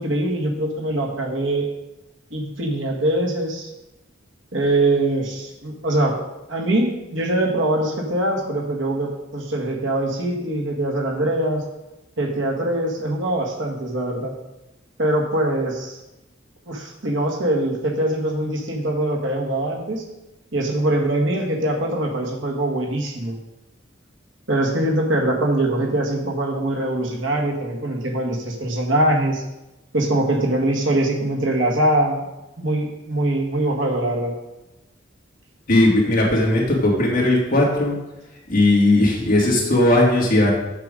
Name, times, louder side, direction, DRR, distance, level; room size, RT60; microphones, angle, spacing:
voice 1, 0.0-1.7 2.3-3.7 4.5-6.2 6.5-11.6 12.2-14.3 15.0-16.0 16.7-20.0 20.5-23.4 24.5-29.4 29.9-32.2 32.6-34.3, right 1 dB, 70° right, 0 dB, 1.7 m, -22 dB
voice 2, 35.7-37.9 38.5-40.5, left 1 dB, 45° left, -3 dB, 2.4 m, -17 dB
7.5 x 7.0 x 5.1 m, 1.0 s
head